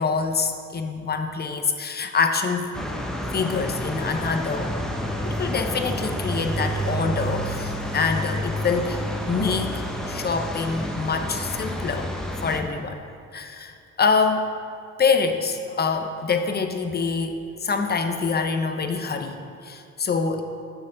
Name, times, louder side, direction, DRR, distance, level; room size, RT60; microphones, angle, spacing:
voice 1, 0.0-2.7 3.3-4.8 5.2-12.1 12.4-13.0 13.3-14.4 15.0-20.4, left 5 dB, 35° left, 6 dB, 0.7 m, -25 dB
sound 1, 2.7-12.6, equal, ahead, 0.8 m, -29 dB
8.9 x 6.7 x 3.9 m, 2.4 s
cardioid pair, 90°, 30 cm